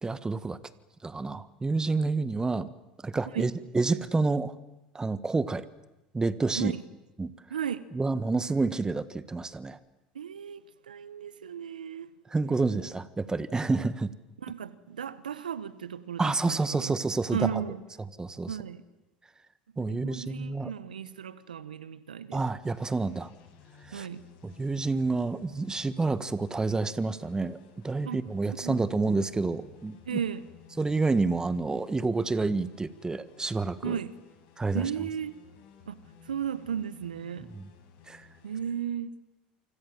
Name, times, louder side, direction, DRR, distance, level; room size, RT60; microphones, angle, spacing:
voice 1, 0.0-0.6 1.0-2.7 3.0-4.5 4.9-5.7 6.1-6.7 7.2-7.3 7.9-9.8 12.3-14.1 16.2-17.5 18.2-18.5 19.8-20.7 22.3-23.3 23.9-24.1 24.4-30.2 30.8-34.0 34.6-34.9 37.5-37.7 38.1-38.3, right 3 dB, 15° right, 1.7 m, -29 dB
voice 2, 7.5-7.8 10.1-12.1 14.4-17.0 17.3-17.8 18.5-18.8 19.8-22.5 23.9-24.3 28.0-28.2 28.6-28.8 30.0-30.5 33.8-34.2 34.7-35.4 35.8-37.5 38.4-39.2, right 8 dB, 85° right, 1.2 m, -35 dB
sound 1, 22.6-38.6, left 6 dB, 65° left, 7.9 m, -56 dB
28.5 x 25.5 x 7.5 m
hypercardioid pair, 80°, 4 cm